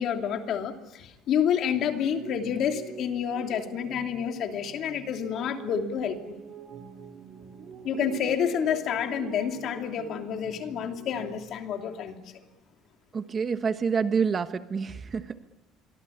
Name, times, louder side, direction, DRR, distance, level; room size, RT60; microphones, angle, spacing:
voice 1, 0.0-6.4 7.8-12.2, left 8 dB, 55° left, 4 dB, 3.0 m, -29 dB
sound 1, 1.7-11.4, right 7 dB, 50° right, 3.8 m, -43 dB
voice 2, 13.1-15.5, right 6 dB, 30° right, 10 dB, 1.2 m, -28 dB
27.0 x 24.0 x 8.7 m, 1.1 s
cardioid pair, 135°, 0 cm